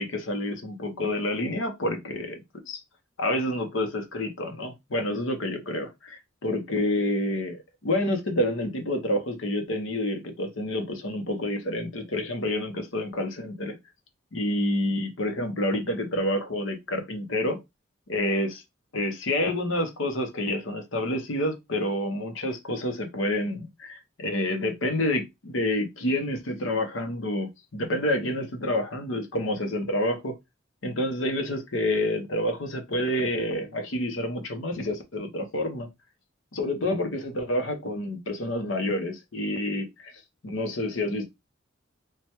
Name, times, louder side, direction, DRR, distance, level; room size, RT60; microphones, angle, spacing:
voice 1, 0.0-2.4 2.7-2.8 3.2-13.8 14.3-17.6 18.1-18.6 18.9-30.3 30.8-35.9 36.5-40.1 40.4-41.3, left 1 dB, 80° left, 0.8 m, -28 dB
3.3 x 2.3 x 2.9 m
head